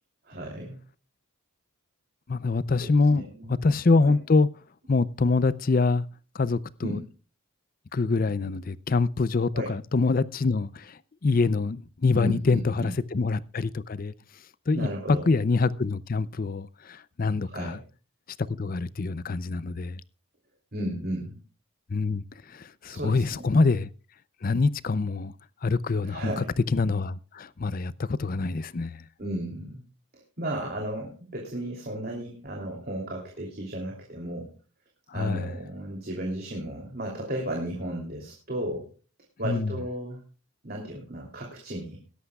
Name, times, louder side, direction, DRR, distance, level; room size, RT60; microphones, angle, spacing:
voice 1, 0.3-0.8 2.8-3.6 4.0-4.1 6.8-7.1 9.5-9.7 12.1-12.9 14.7-15.3 17.4-17.8 20.7-21.4 22.9-23.7 26.0-26.5 29.2-29.8 30.4-34.5 35.1-38.9 39.4-40.2 40.6-42.0, right 1 dB, 45° right, 3.0 m, -34 dB
voice 2, 2.3-3.2 3.5-4.5 4.9-6.1 6.3-7.0 7.9-14.1 14.7-17.8 18.6-20.0 21.9-22.2 22.5-23.9 24.4-25.3 25.6-26.4 26.7-29.0 35.1-35.5 39.4-39.7, left 3 dB, 40° left, 0.5 m, -25 dB
21.0 x 11.5 x 2.3 m
head